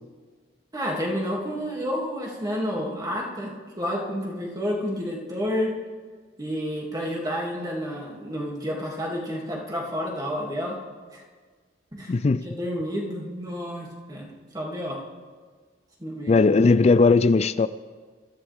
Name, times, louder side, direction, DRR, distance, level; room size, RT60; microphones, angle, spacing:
voice 1, 0.7-5.8 6.4-10.8 11.1-11.2 11.9-12.1 12.4-15.0 16.0-16.4, equal, 20° right, 2.6 m, -30 dB
voice 2, 12.1-12.4 16.3-17.7, left 3 dB, 35° left, 0.4 m, -18 dB
22.5 x 14.5 x 3.6 m
head